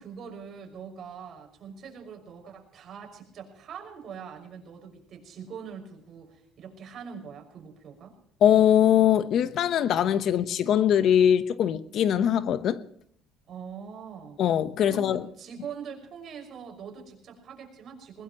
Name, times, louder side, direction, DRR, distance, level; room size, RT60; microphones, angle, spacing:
voice 1, 0.0-8.1 13.5-14.4 14.9-18.2, right 7 dB, 50° right, 5.9 m, -43 dB
voice 2, 8.4-12.8 14.4-15.3, left 10 dB, 60° left, 1.0 m, -22 dB
21.5 x 21.0 x 3.1 m
cardioid pair, 125°, 0 cm